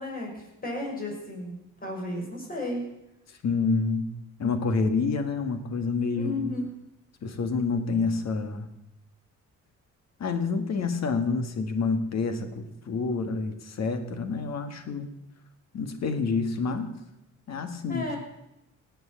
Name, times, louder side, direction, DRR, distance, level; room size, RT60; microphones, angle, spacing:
voice 1, 0.0-2.8 6.1-6.6 17.9-18.2, left 2 dB, 30° left, -1 dB, 6.3 m, -33 dB
voice 2, 3.4-4.1 4.4-6.4 7.2-8.7 10.2-15.1 15.7-16.9 17.5-18.1, left 4 dB, 60° left, 8 dB, 1.9 m, -28 dB
18.0 x 7.9 x 7.2 m, 0.87 s
cardioid pair, 90°, 30 cm